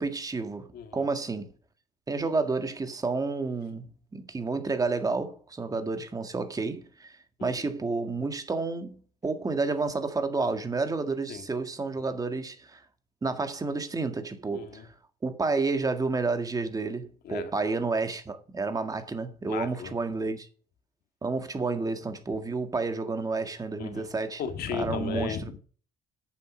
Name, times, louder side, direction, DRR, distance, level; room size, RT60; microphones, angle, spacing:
voice 1, 0.0-1.5 2.1-3.8 4.1-12.8 13.2-14.9 15.2-20.5 21.2-24.4 24.7-25.4, right 3 dB, 20° right, 1.7 m, -30 dB
voice 2, 0.7-1.1 7.4-7.7 11.3-11.4 14.5-14.9 17.2-17.5 19.4-19.9 23.8-24.1 24.4-25.6, left 7 dB, 65° left, 2.0 m, -35 dB
9.4 x 7.1 x 6.2 m
cardioid pair, 110°, 17 cm